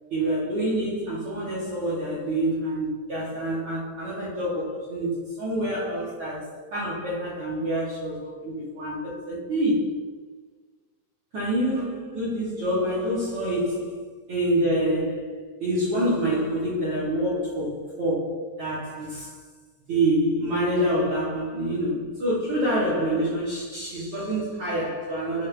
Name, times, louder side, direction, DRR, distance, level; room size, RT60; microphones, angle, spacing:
voice 1, 0.1-10.0 11.3-19.4 19.9-25.5, right 1 dB, 90° right, 1.2 m, -27 dB
6.2 x 2.5 x 3.2 m
omnidirectional pair, 4.0 m